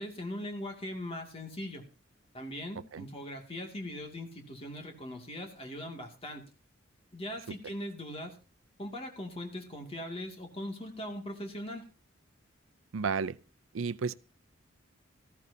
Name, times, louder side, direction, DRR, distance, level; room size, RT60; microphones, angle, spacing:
voice 1, 0.0-1.8 2.3-6.4 7.1-8.4 8.8-11.8, left 1 dB, 30° left, 2.4 m, -40 dB
voice 2, 12.9-13.4 13.7-14.2, right 5 dB, 90° right, 0.6 m, -32 dB
18.5 x 14.0 x 2.8 m
head